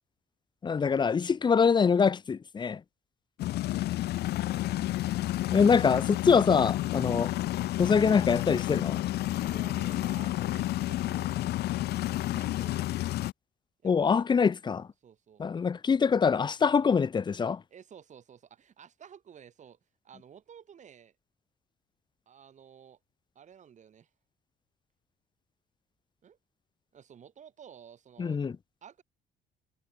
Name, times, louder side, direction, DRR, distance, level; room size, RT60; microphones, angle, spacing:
voice 1, 0.6-2.8 5.5-7.3 7.8-9.0 13.8-14.9 15.4-17.6 28.2-28.5, left 6 dB, 25° left, 0.8 m, -24 dB
sound 1, 3.4-13.3, left 15 dB, 75° left, 1.8 m, -30 dB
voice 2, 9.1-12.9 13.8-14.2 15.0-15.4 17.7-19.8 20.0-21.2 22.3-23.0 23.4-24.1 26.2-26.4 26.9-28.4 28.8-29.0, right 8 dB, 45° right, 5.6 m, -53 dB
cardioid pair, 110°, 17 cm